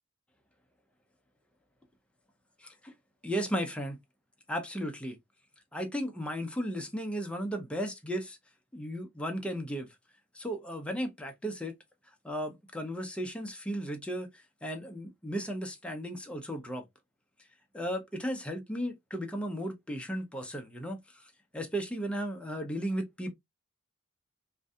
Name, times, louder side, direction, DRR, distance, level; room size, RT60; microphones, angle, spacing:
voice 1, 2.6-2.9 3.2-4.0 4.5-5.2 5.7-8.4 8.7-9.9 10.3-11.8 12.2-16.9 17.7-23.3, equal, 5° left, 0.5 m, -35 dB
2.6 x 2.5 x 2.2 m
head